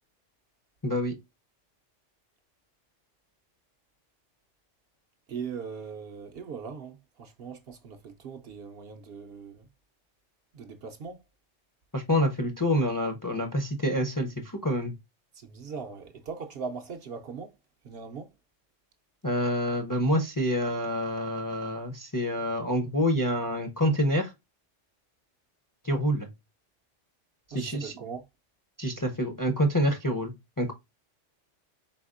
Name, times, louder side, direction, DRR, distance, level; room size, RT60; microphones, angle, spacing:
voice 1, 0.8-1.1 11.9-14.9 19.2-24.3 25.8-26.3 27.5-28.0 28.8-30.7, equal, 20° left, 0.5 m, -27 dB
voice 2, 5.3-9.7 10.5-11.2 15.3-17.6 17.8-18.3 27.5-28.2, right 5 dB, 60° right, 0.7 m, -40 dB
4.1 x 4.1 x 2.4 m
omnidirectional pair, 1.3 m